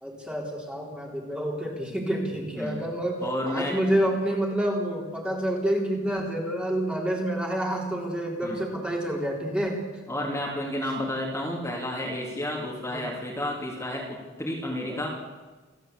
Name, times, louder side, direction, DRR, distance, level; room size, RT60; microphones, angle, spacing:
voice 1, 0.0-3.2 3.5-9.8 12.9-13.0 14.9-15.0, right 1 dB, 5° right, -1 dB, 3.7 m, -28 dB
voice 2, 3.2-3.8 8.4-8.6 10.1-15.1, left 1 dB, 15° left, -3 dB, 3.2 m, -31 dB
29.0 x 12.0 x 8.2 m, 1.3 s
head